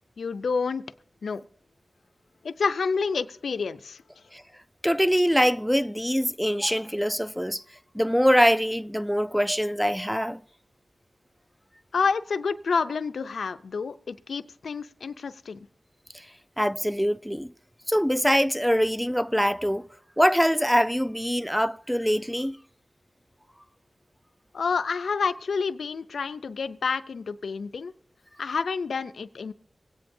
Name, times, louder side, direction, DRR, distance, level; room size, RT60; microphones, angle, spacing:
voice 1, 0.2-0.8 1.2-1.5 2.4-4.2 11.9-15.7 24.5-27.9 28.4-29.5, left 5 dB, 85° left, 0.5 m, -29 dB
voice 2, 4.8-7.6 7.9-10.4 16.6-17.5 17.9-19.8 20.2-22.6, equal, ahead, 0.4 m, -23 dB
23.5 x 9.1 x 2.7 m
cardioid pair, 55°, 0 cm